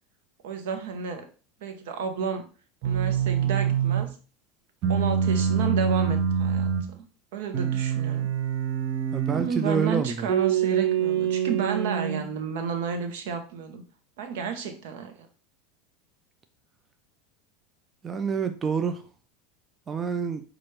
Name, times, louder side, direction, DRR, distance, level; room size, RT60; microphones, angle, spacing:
voice 1, 0.4-1.2 1.6-2.4 2.8-4.1 4.9-7.0 7.3-8.3 9.3-13.8 14.2-15.3, right 6 dB, 75° right, 0.9 m, -31 dB
sound 1, 2.8-4.1 4.8-6.9 7.5-9.5 10.3-12.3, right 8 dB, 50° right, 0.8 m, -25 dB
voice 2, 9.1-10.3 18.0-19.0 19.9-20.4, right 6 dB, 25° right, 0.4 m, -27 dB
5.7 x 2.5 x 3.2 m
supercardioid pair, 110°, 0 cm